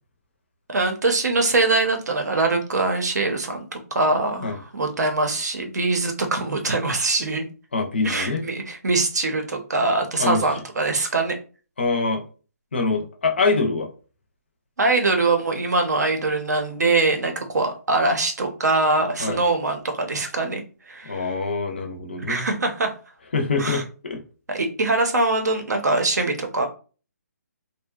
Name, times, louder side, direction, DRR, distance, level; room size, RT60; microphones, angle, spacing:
voice 1, 0.7-7.4 8.0-11.3 14.8-21.3 22.3-22.9 23.6-23.8 24.5-26.7, right 3 dB, 80° right, 5 dB, 0.7 m, -23 dB
voice 2, 7.7-8.5 10.2-10.4 11.8-12.2 12.7-13.9 19.2-19.4 21.0-22.5 23.3-24.2, left 3 dB, 40° left, 5 dB, 0.4 m, -24 dB
2.7 x 2.1 x 2.3 m, 0.36 s
hypercardioid pair, 180°, 9 cm